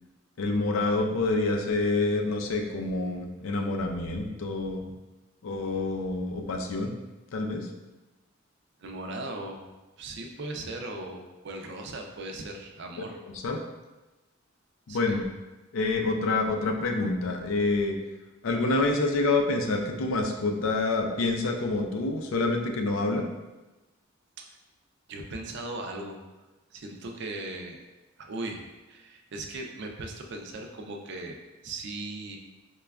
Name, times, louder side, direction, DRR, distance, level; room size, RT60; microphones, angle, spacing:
voice 1, 0.4-4.8 5.4-6.9 7.3-7.7 13.3-13.6 14.9-15.2 15.7-17.9 18.4-23.2, left 3 dB, 75° left, 3 dB, 0.4 m, -27 dB
voice 2, 8.8-9.6 10.0-13.2 14.9-15.2 24.4-24.5 25.1-26.2 26.7-27.8 28.2-32.4, right 2 dB, 60° right, 2 dB, 0.4 m, -38 dB
4.9 x 2.2 x 2.3 m, 1.1 s
head